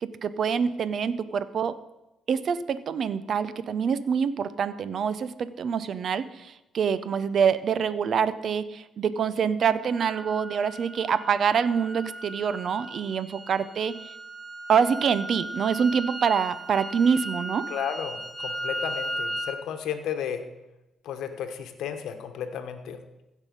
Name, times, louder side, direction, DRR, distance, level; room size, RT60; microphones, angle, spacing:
voice 1, 0.0-1.8 2.3-13.9 14.7-17.7, right 7 dB, 55° right, 15 dB, 0.6 m, -26 dB
sound 1, 9.9-19.6, right 1 dB, 20° right, 1.3 m, -36 dB
voice 2, 17.7-20.4 21.0-23.0, left 8 dB, 80° left, 7 dB, 1.1 m, -33 dB
15.5 x 5.5 x 5.4 m, 0.93 s
cardioid pair, 90°, 0 cm